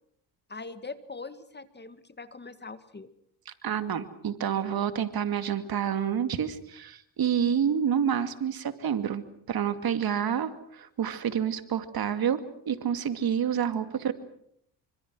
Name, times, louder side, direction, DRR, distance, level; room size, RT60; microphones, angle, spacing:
voice 1, 0.5-3.1, left 4 dB, 25° left, 12 dB, 1.9 m, -42 dB
voice 2, 3.5-14.1, right 8 dB, 50° right, 10 dB, 2.4 m, -28 dB
26.0 x 25.5 x 6.3 m, 0.69 s
supercardioid pair, 80°, 45 cm